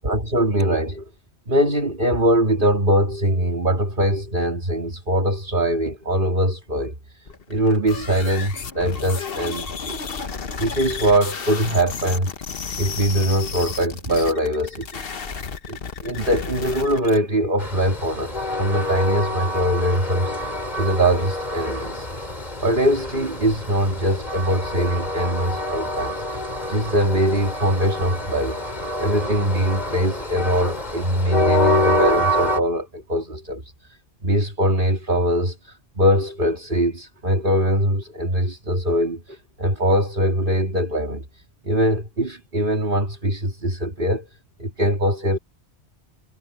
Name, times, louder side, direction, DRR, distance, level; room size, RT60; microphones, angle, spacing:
voice 1, 0.0-1.1 1.5-7.2 7.5-10.0 10.6-12.3 12.8-15.0 15.7-22.1 22.6-26.2 26.7-28.6 29.0-33.6 34.2-41.2 41.6-44.3 44.6-45.4, equal, 50° right, 2.6 m, -22 dB
sound 1, 7.3-17.2, left 5 dB, 60° left, 1.3 m, -32 dB
Train, 17.6-32.6, left 1 dB, 40° left, 3.1 m, -26 dB
omnidirectional pair, 1.1 m